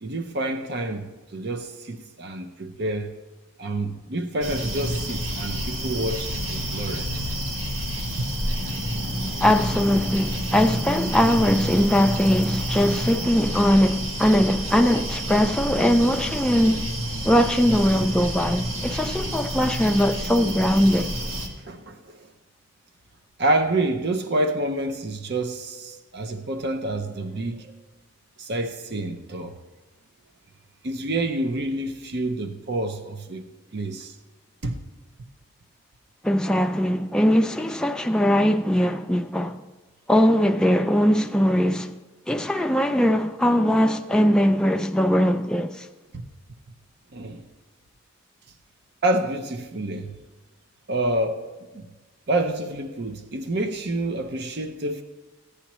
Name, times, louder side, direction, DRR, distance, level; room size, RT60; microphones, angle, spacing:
voice 1, 0.0-3.1 3.6-7.3 8.2-8.3 21.6-22.3 23.4-27.8 28.4-29.5 30.8-33.5 33.7-34.1 34.6-34.8 46.1-46.3 47.1-47.4 49.0-50.1 50.9-51.5 51.7-51.9 52.3-55.0, right 1 dB, 55° right, 0.6 m, -28 dB
sound 1, 4.4-21.5, equal, 75° right, 1.9 m, -29 dB
voice 2, 9.4-16.8 17.2-21.1 36.2-39.6 40.1-41.9 42.3-45.9, equal, 5° left, 0.4 m, -21 dB
15.0 x 9.8 x 3.0 m
head